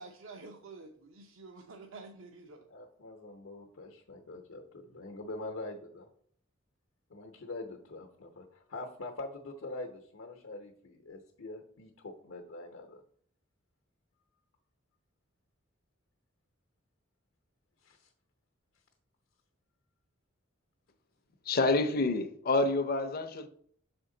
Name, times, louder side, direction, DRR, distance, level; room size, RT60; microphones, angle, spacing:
voice 1, 0.0-2.7, right 3 dB, 70° right, 0.6 m, -49 dB
voice 2, 2.7-6.1 7.1-13.0 17.8-18.1, left 2 dB, 75° left, 0.8 m, -44 dB
voice 3, 21.5-23.5, left 2 dB, 50° left, 0.6 m, -28 dB
6.4 x 4.4 x 3.8 m
head